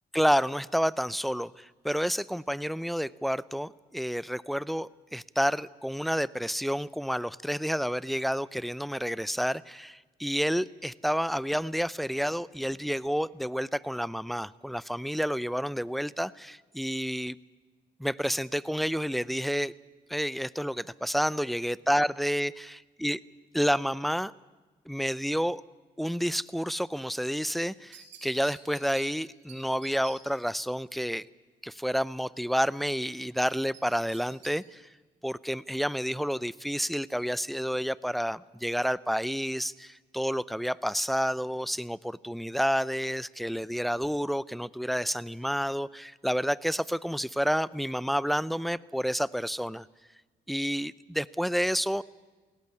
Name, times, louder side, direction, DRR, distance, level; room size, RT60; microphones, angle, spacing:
voice 1, 0.1-17.4 18.0-19.7 20.1-23.2 23.5-24.3 24.9-25.6 26.0-31.3 31.6-34.8 35.2-49.9 50.5-52.0, equal, ahead, 20 dB, 0.5 m, -29 dB
sound 1, 27.6-29.1 29.5-29.6 29.8-30.2 33.7-34.5 34.9-35.0, right 9 dB, 90° right, 3.1 m, -49 dB
17.5 x 16.5 x 9.8 m, 1.3 s
supercardioid pair, 55°, 18 cm